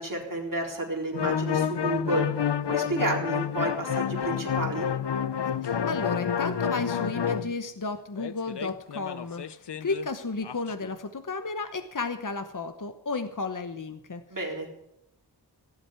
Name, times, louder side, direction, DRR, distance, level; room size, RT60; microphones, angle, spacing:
voice 1, 0.0-2.3 2.7-4.9 14.3-14.7, right 2 dB, 55° right, -1 dB, 4.1 m, -31 dB
sound 1, 1.1-7.5 8.2-10.1 10.4-10.9, left 8 dB, 85° left, 0.7 m, -29 dB
voice 2, 5.6-9.4 9.8-14.2, left 3 dB, 50° left, 9 dB, 1.0 m, -33 dB
17.0 x 7.8 x 9.4 m, 0.81 s
wide cardioid pair, 50°, 40 cm